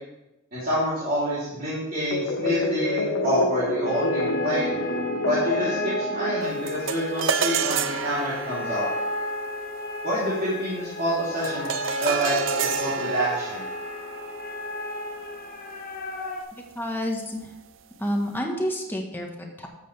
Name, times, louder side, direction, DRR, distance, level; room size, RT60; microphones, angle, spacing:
voice 1, 0.5-4.7 5.3-8.9 10.0-11.7 12.0-13.7, equal, 45° right, -11 dB, 3.4 m, -27 dB
sound 1, 2.1-7.3, left 2 dB, 70° left, 1.1 m, -28 dB
sound 2, 3.9-16.4, left 2 dB, 45° left, 1.0 m, -34 dB
sound 3, 6.7-16.2, right 7 dB, 65° right, 0.6 m, -31 dB
voice 2, 16.5-17.5 18.0-19.7, equal, 10° left, 1 dB, 1.3 m, -29 dB
12.5 x 7.7 x 3.5 m, 0.99 s
head